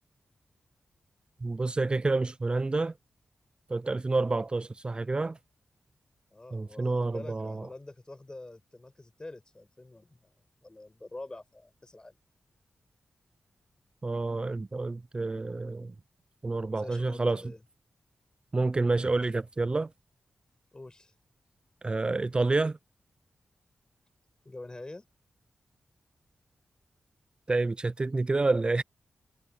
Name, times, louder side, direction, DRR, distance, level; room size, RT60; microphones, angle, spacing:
voice 1, 1.4-2.9 3.7-5.4 6.5-7.7 14.0-15.9 16.4-17.4 18.5-19.9 21.8-22.8 27.5-28.8, right 3 dB, 35° right, 0.4 m, -28 dB
voice 2, 6.3-10.3 10.6-12.2 16.8-17.6 20.7-21.1 24.5-25.1, left 2 dB, 30° left, 5.2 m, -46 dB
cardioid pair, 50°, 3 cm